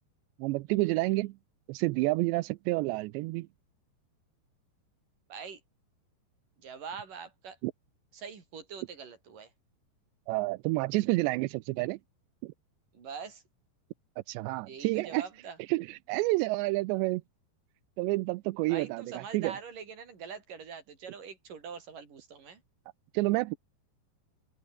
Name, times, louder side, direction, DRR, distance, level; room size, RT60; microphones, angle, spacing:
voice 1, 0.4-1.3 1.7-3.5 7.6-7.7 10.3-12.0 12.4-12.5 14.3-15.2 15.7-17.2 18.0-19.6 23.1-23.6, right 21 dB, 90° right, 2.9 m, -29 dB
voice 2, 5.3-5.6 6.6-7.6 8.1-9.5 12.9-13.4 14.7-15.6 18.7-22.6, right 6 dB, 50° right, 5.9 m, -43 dB
open air
omnidirectional pair, 4.9 m